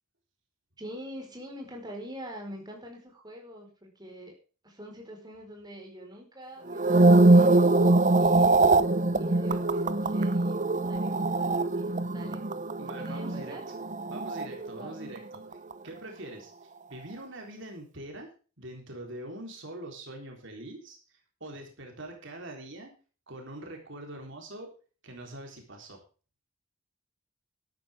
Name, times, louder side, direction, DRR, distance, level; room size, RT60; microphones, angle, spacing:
voice 1, 0.8-4.4 4.6-7.6 8.1-8.8 9.1-12.4 12.9-13.6 14.7-15.0, equal, 20° right, 1 dB, 4.7 m, -44 dB
sound 1, 6.7-15.1 15.3-15.7, right 2 dB, 35° right, 0.8 m, -23 dB
voice 2, 12.8-13.5 14.1-15.2 15.8-22.9 23.3-24.7 25.0-26.0, right 1 dB, 60° right, 2 dB, 3.8 m, -43 dB
13.0 x 12.5 x 3.6 m, 0.37 s
head